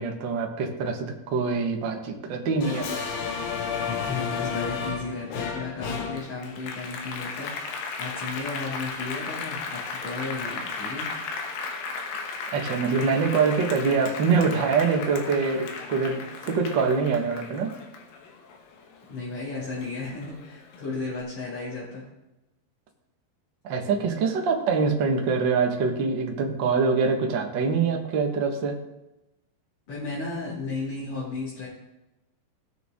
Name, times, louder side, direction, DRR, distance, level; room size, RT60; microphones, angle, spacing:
voice 1, 0.0-2.9 12.5-17.7 23.6-28.8, right 5 dB, 85° right, 2 dB, 1.0 m, -24 dB
Applause, 2.6-19.4 19.8-21.0, left 5 dB, 75° left, 2.8 m, -34 dB
voice 2, 3.8-7.6 8.0-11.1 19.1-22.0 29.9-31.7, left 3 dB, 50° left, -8 dB, 3.5 m, -34 dB
18.5 x 6.5 x 3.6 m, 0.98 s
omnidirectional pair, 4.2 m